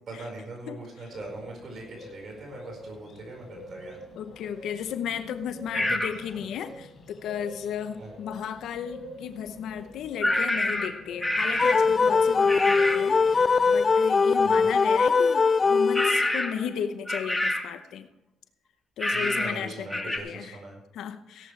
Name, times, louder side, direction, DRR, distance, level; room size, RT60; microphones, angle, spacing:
voice 1, 0.1-4.0 5.7-6.0 8.0-8.1 14.4-14.7 19.1-20.8 21.4-21.5, right 2 dB, 55° right, 0 dB, 4.9 m, -41 dB
voice 2, 0.7-1.1 4.1-18.1 19.0-20.6 20.9-21.5, left 8 dB, 80° left, 10 dB, 0.8 m, -35 dB
sound 1, 1.1-13.9, left 1 dB, 50° left, 4.4 m, -46 dB
sound 2, 5.7-6.2 10.2-11.9 12.5-13.1 15.9-16.7 17.1-17.7 19.0-19.6 19.9-20.2, left 1 dB, 10° left, 1.8 m, -27 dB
sound 3, 11.6-16.5, left 4 dB, 35° left, 0.3 m, -21 dB
16.5 x 11.5 x 3.3 m, 0.95 s
cardioid pair, 90°, 0 cm